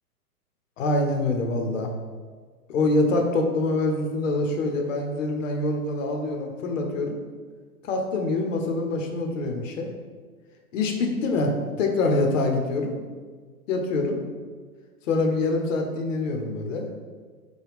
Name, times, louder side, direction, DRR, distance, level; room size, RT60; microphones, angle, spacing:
voice 1, 0.8-1.9 2.7-7.2 7.8-9.9 10.7-12.9 13.7-14.2 15.1-16.9, left 2 dB, 55° left, 2 dB, 0.7 m, -25 dB
4.8 x 2.3 x 3.3 m, 1.5 s
hypercardioid pair, 155°, 45 cm